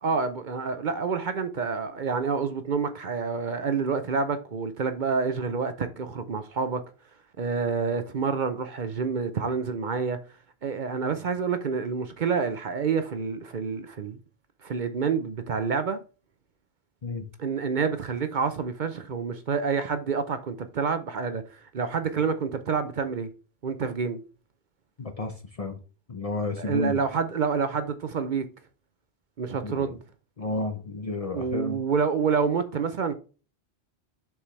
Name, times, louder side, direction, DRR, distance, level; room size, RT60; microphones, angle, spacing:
voice 1, 0.0-6.8 7.4-10.2 10.6-14.2 14.6-16.0 17.4-23.3 23.6-24.2 26.6-28.4 29.4-30.0 31.3-33.1, right 5 dB, 50° right, 0.7 m, -28 dB
voice 2, 25.0-25.8 26.1-27.0 29.6-30.0 30.4-31.8, left 2 dB, 40° left, 0.6 m, -31 dB
7.0 x 4.7 x 3.2 m
omnidirectional pair, 1.1 m